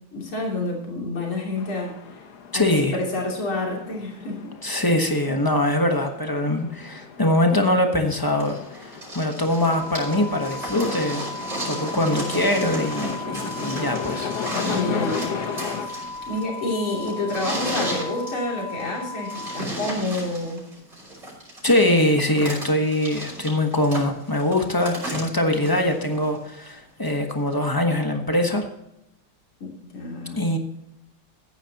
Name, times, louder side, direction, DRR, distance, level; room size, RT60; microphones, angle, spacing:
voice 1, 0.1-2.2 2.5-2.7 2.9-4.5 14.6-15.3 15.7-20.6 29.6-30.6, left 2 dB, 75° left, -2 dB, 3.8 m, -29 dB
sound 1, 1.6-15.9, left 6 dB, 55° left, 1.4 m, -35 dB
voice 2, 2.5-3.0 4.6-11.3 11.6-14.3 21.6-28.7 30.4-30.6, left 1 dB, 15° left, 4 dB, 0.8 m, -22 dB
sound 2, 8.4-26.5 27.5-27.6, right 1 dB, 35° right, 5.0 m, -34 dB
sound 3, 9.6-19.6, left 2 dB, 55° right, 3.9 m, -36 dB
15.0 x 9.5 x 2.9 m, 0.85 s
omnidirectional pair, 2.3 m